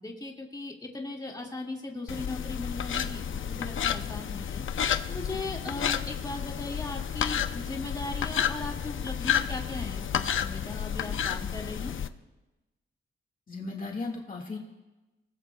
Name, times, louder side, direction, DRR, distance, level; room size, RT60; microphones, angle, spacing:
voice 1, 0.0-11.9, left 2 dB, 20° left, -1 dB, 2.1 m, -38 dB
sound 1, 2.1-12.1, left 8 dB, 75° left, 0.6 m, -31 dB
voice 2, 13.5-14.6, left 3 dB, 40° left, 0 dB, 1.9 m, -36 dB
29.5 x 19.0 x 2.3 m, 1.1 s
wide cardioid pair, 140°, 21 cm